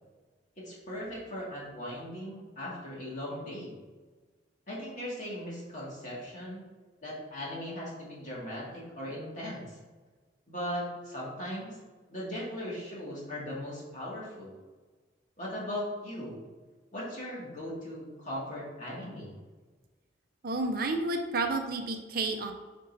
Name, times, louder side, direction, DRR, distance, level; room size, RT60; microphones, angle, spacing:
voice 1, 0.6-3.7 4.7-6.6 7.0-9.8 10.5-11.8 12.1-14.5 15.4-16.4 16.9-19.4, equal, 40° left, -6 dB, 2.0 m, -38 dB
voice 2, 20.4-22.5, right 2 dB, 50° right, 4 dB, 0.6 m, -30 dB
7.7 x 5.3 x 2.7 m, 1.4 s
head